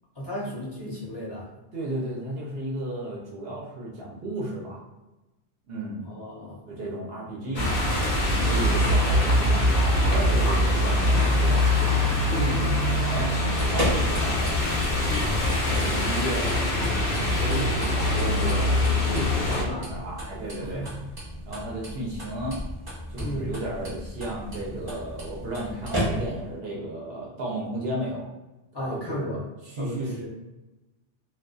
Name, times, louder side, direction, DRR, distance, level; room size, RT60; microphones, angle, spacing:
voice 1, 0.2-1.5 6.0-6.6 12.3-12.8 19.4-19.9 20.6-20.9 23.2-23.5 28.7-29.4 29.8-30.3, equal, 30° left, -6 dB, 0.5 m, -34 dB
voice 2, 1.7-4.8 5.7-6.1 6.7-7.8 8.4-11.7 13.0-16.9 17.2-18.8 19.0-20.8 21.5-22.6 23.1-28.3 28.8-29.4 29.6-30.3, right 1 dB, 65° right, -4 dB, 0.8 m, -34 dB
sound 1, 7.5-19.6, left 1 dB, 60° left, 0.8 m, -23 dB
sound 2, 13.4-26.6, equal, 25° right, 0.6 m, -35 dB
2.3 x 2.2 x 2.4 m, 1.0 s
omnidirectional pair, 1.1 m